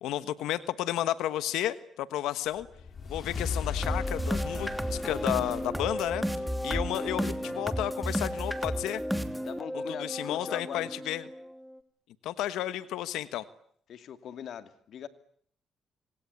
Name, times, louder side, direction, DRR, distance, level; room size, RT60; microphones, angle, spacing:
voice 1, 0.0-2.7 3.1-6.2 6.6-9.0 10.0-11.2 12.2-13.4, left 13 dB, 90° left, 13 dB, 1.3 m, -32 dB
sound 1, 2.6-7.1, left 5 dB, 45° left, 4.6 m, -37 dB
sound 2, 3.8-11.8, equal, ahead, 2.7 m, -33 dB
voice 2, 9.4-10.9 13.9-15.1, left 9 dB, 70° left, 10 dB, 2.5 m, -40 dB
26.0 x 26.0 x 8.5 m, 0.63 s
cardioid pair, 90°, 0 cm